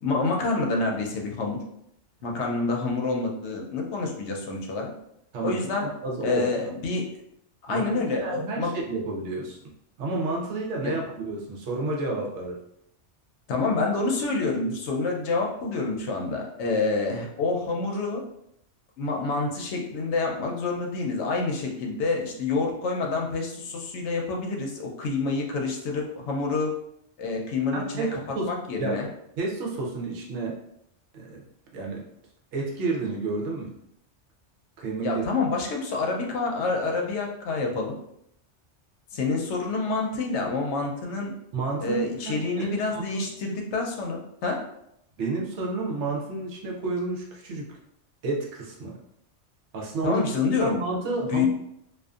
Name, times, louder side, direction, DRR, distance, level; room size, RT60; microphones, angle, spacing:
voice 1, 0.0-1.6 2.2-4.9 5.4-5.9 6.2-7.0 7.6-8.7 10.8-10.9 13.5-18.2 19.0-26.7 27.2-28.2 28.5-29.1 35.0-38.0 39.1-41.3 41.8-44.6 50.0-50.8 51.3-51.4, left 3 dB, 75° left, 0 dB, 0.8 m, -27 dB
voice 2, 5.3-6.4 7.7-9.6 10.0-12.6 27.7-28.5 28.8-29.0 29.4-30.6 31.1-31.4 31.7-32.0 32.5-33.7 34.8-35.2 41.5-43.2 45.2-47.7 48.2-49.0 49.7-50.3 50.5-51.5, right 3 dB, 75° right, -2 dB, 0.9 m, -30 dB
2.5 x 2.4 x 2.3 m, 0.76 s
omnidirectional pair, 1.2 m